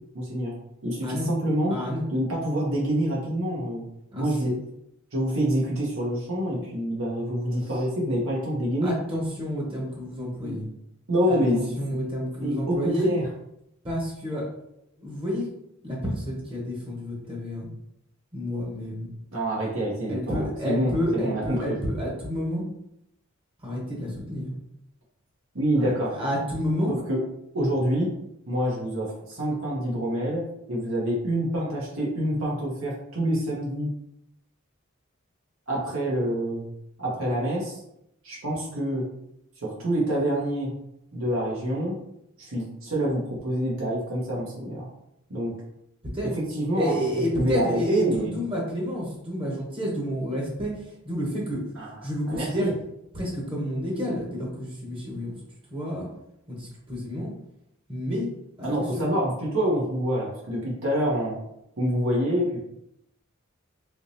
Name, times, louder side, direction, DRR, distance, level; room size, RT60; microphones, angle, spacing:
voice 1, 0.1-0.6 0.8-1.8 2.1-3.8 4.2-4.6 5.1-9.0 10.4-10.6 11.1-11.8 12.4-13.2 19.3-21.8 25.5-26.2 26.9-27.2 27.5-28.1 28.5-33.9 35.7-36.7 37.0-37.8 38.2-39.1 39.6-40.7 41.1-42.0 42.4-44.9 45.3-45.6 46.2-48.3 51.8-51.9 52.3-52.7 58.6-61.4 61.8-62.6, equal, 80° right, -5 dB, 1.1 m, -27 dB
voice 2, 1.7-2.1 4.1-4.5 8.8-10.7 11.3-13.1 13.8-14.5 15.0-15.5 15.8-17.7 18.3-19.1 20.1-22.6 23.6-24.5 25.8-26.9 46.1-46.3 46.7-51.6 52.0-52.7 53.1-55.4 55.7-56.1 56.5-57.3 57.9-58.3 58.6-59.1, equal, 25° right, -3 dB, 0.9 m, -29 dB
3.5 x 3.0 x 2.7 m, 0.80 s
head